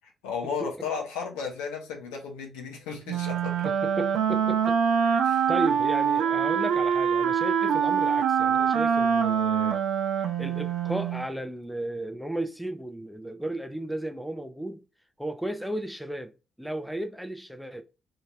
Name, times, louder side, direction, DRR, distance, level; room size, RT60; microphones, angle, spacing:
voice 1, 0.2-3.5 5.2-5.5, left 6 dB, 70° left, 0.8 m, -34 dB
Wind instrument woodwind instrument, 3.1-11.3, right 7 dB, 60° right, 0.4 m, -24 dB
voice 2, 3.6-9.8 10.4-14.8 15.2-16.3 16.6-17.8, right 1 dB, ahead, 0.5 m, -34 dB
2.8 x 2.8 x 3.5 m
figure-of-eight pair, 40°, 0 cm